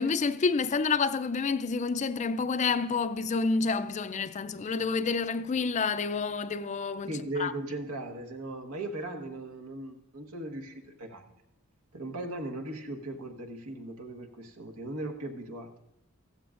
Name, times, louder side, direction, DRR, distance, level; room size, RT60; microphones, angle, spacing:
voice 1, 0.0-7.1 7.4-7.5, left 4 dB, 35° left, 0.4 m, -28 dB
voice 2, 7.1-11.3 11.9-15.7, right 1 dB, 90° right, 1.4 m, -38 dB
15.5 x 14.5 x 2.5 m
head